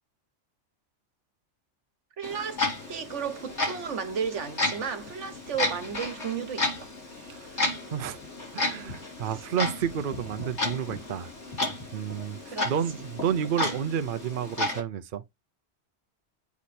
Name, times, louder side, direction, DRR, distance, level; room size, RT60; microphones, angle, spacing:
Clock, 2.2-14.8, left 2 dB, 70° left, 3.6 m, -33 dB
voice 1, 2.2-6.9 9.3-9.4 12.5-12.7, right 7 dB, 75° right, 1.4 m, -34 dB
voice 2, 7.3-8.2 8.5-11.3 11.9-15.2, right 8 dB, 55° right, 0.7 m, -31 dB
8.3 x 3.1 x 4.2 m
omnidirectional pair, 1.2 m